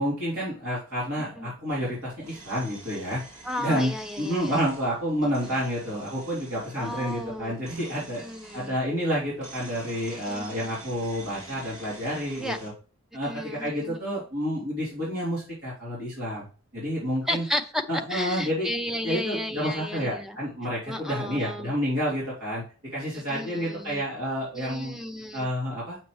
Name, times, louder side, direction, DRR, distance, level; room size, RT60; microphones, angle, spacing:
voice 1, 0.0-3.2 3.6-3.9 4.2-8.2 8.5-12.7 13.1-16.5 16.7-17.4 17.9-18.7 19.0-22.6 22.9-25.0 25.3-26.0, equal, 65° right, -8 dB, 3.3 m, -29 dB
sound 1, 1.7-12.7, right 2 dB, 35° right, 3.7 m, -47 dB
voice 2, 3.4-4.6 5.4-5.5 6.8-7.6 8.2-8.7 10.1-10.7 12.4-12.6 13.2-14.0 17.2-17.8 18.1-20.4 20.9-21.7 23.1-24.0 24.5-25.5, left 1 dB, ahead, 7 dB, 0.6 m, -34 dB
7.3 x 6.2 x 3.1 m, 0.38 s
head